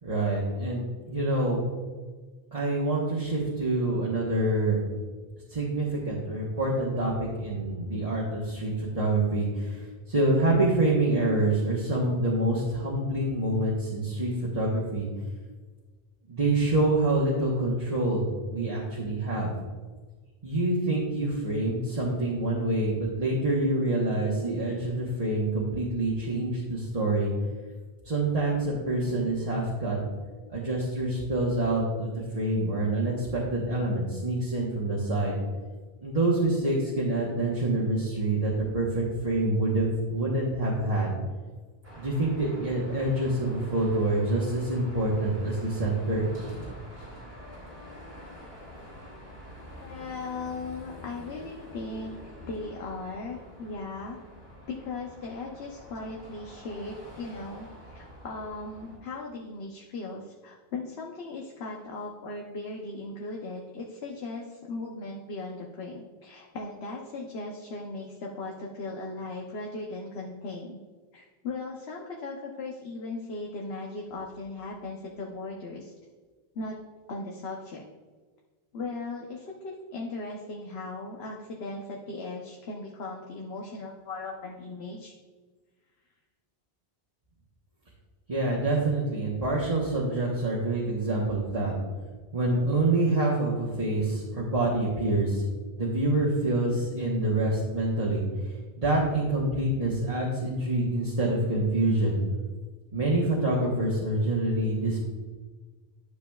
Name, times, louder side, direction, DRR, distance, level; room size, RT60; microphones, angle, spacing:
voice 1, 0.0-1.6 2.5-4.8 5.5-15.1 16.3-19.5 20.4-27.3 28.0-30.0 30.5-35.4 36.0-41.2 42.0-46.3 88.3-91.7 92.3-95.4 95.7-98.2 98.8-102.2 102.9-105.0, right 2 dB, 40° right, -7 dB, 1.2 m, -26 dB
Car passing by / Traffic noise roadway noise / Engine, 41.8-59.0, left 1 dB, 75° right, 3.1 m, -46 dB
voice 2, 49.8-52.2 52.4-54.2 54.7-70.8 71.1-75.9 76.5-76.8 77.1-77.9 78.7-85.1, left 3 dB, 85° left, -1 dB, 1.1 m, -38 dB
12.0 x 6.8 x 2.3 m, 1.4 s
omnidirectional pair, 1.0 m